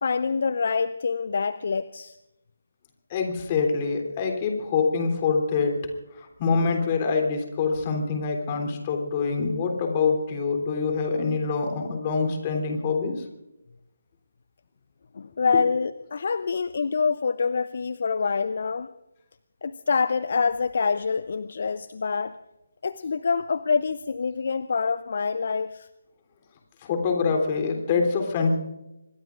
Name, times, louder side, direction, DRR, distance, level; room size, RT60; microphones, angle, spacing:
voice 1, 0.0-2.1 15.2-18.9 19.6-22.3 22.8-25.9, left 5 dB, 50° left, 14 dB, 0.6 m, -26 dB
voice 2, 3.1-5.9 6.1-13.2 26.8-28.6, left 4 dB, 25° left, 3 dB, 3.2 m, -25 dB
25.5 x 22.0 x 2.5 m, 0.92 s
figure-of-eight pair, 150°, 0 cm